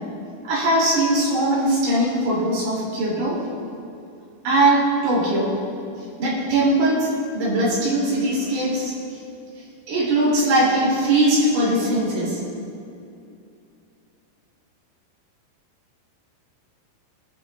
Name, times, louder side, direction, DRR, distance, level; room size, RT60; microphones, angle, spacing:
voice 1, 0.5-3.4 4.4-5.5 6.2-7.1 7.3-8.9 9.9-12.4, right 1 dB, 85° right, -7 dB, 5.3 m, -20 dB
21.0 x 11.0 x 2.6 m, 2.6 s
omnidirectional pair, 4.6 m